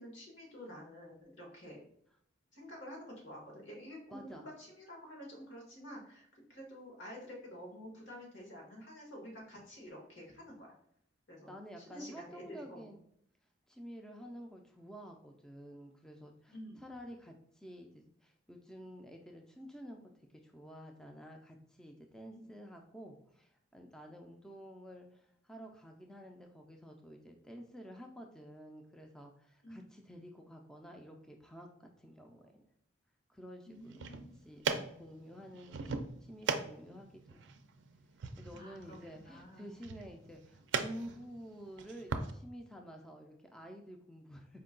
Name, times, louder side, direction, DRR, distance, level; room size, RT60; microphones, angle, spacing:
voice 1, 0.0-1.8 2.5-10.7 11.3-12.4 12.7-12.8 16.5-16.8 22.3-22.5 29.6-29.8 33.7-34.3 38.5-39.0 39.2-39.7, equal, 80° left, -1 dB, 1.5 m, -49 dB
voice 2, 4.1-4.5 11.5-13.0 13.7-32.6 33.3-34.2 34.4-37.5 38.4-44.6, equal, 5° left, 2 dB, 0.3 m, -50 dB
sound 1, 33.8-42.3, right 5 dB, 70° right, 0.4 m, -40 dB
4.4 x 2.2 x 3.7 m, 0.69 s
head